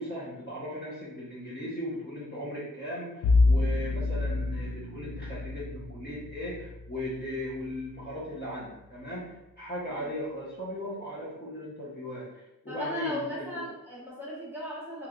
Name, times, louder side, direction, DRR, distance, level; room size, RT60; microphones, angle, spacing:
voice 1, 0.0-13.6, left 1 dB, 30° left, -8 dB, 1.0 m, -37 dB
Bowed string instrument, 3.2-8.3, left 3 dB, 75° left, 0.5 m, -28 dB
voice 2, 12.7-15.1, equal, 5° right, -7 dB, 1.2 m, -37 dB
3.3 x 3.1 x 2.4 m, 0.92 s
wide cardioid pair, 125°, 36 cm